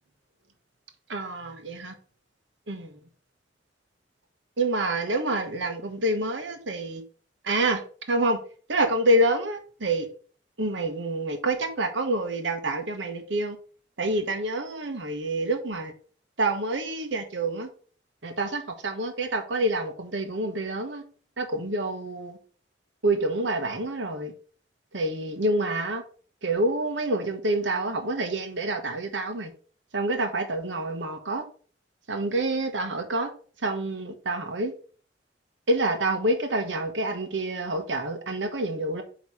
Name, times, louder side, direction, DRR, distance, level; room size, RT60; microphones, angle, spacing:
voice 1, 1.1-1.9 2.7-3.0 4.6-7.0 7.4-7.8 8.1-8.4 8.7-10.1 10.6-13.6 14.0-15.9 16.4-17.7 18.2-21.0 21.4-22.4 23.0-24.3 24.9-26.0 26.4-29.5 29.9-31.4 32.1-33.3 33.6-34.7 35.7-39.0, right 2 dB, 85° right, 1.2 m, -27 dB
8.4 x 3.2 x 4.9 m
head